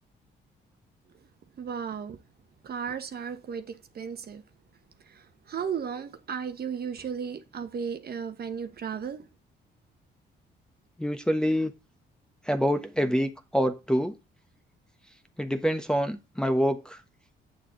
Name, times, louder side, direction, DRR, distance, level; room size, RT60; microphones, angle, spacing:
voice 1, 1.6-2.2 2.6-4.4 5.1-9.2, right 7 dB, 50° right, 1.3 m, -35 dB
voice 2, 11.0-11.7 12.5-14.1 15.4-17.0, equal, 5° left, 1.1 m, -26 dB
8.5 x 6.8 x 3.9 m
cardioid pair, 90°, 20 cm